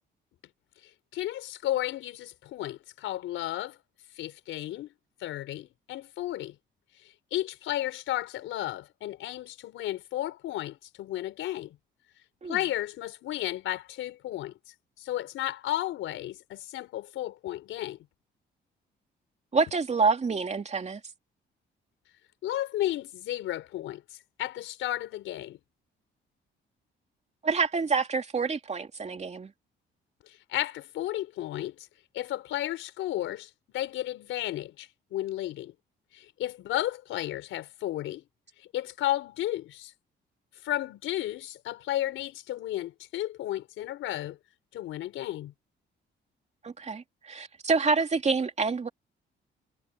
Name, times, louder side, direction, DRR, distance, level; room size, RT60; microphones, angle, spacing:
voice 1, 1.1-3.8 4.2-4.9 5.2-6.5 7.3-11.8 12.5-14.5 15.0-18.0 22.4-24.0 24.4-25.6 30.3-31.8 32.1-35.7 36.1-38.2 38.7-39.9 40.6-44.4 44.7-45.5, left 14 dB, 85° left, 4.6 m, -33 dB
voice 2, 19.5-21.0 27.4-29.5 46.6-48.9, right 4 dB, 35° right, 2.7 m, -27 dB
cardioid pair, 90°, 20 cm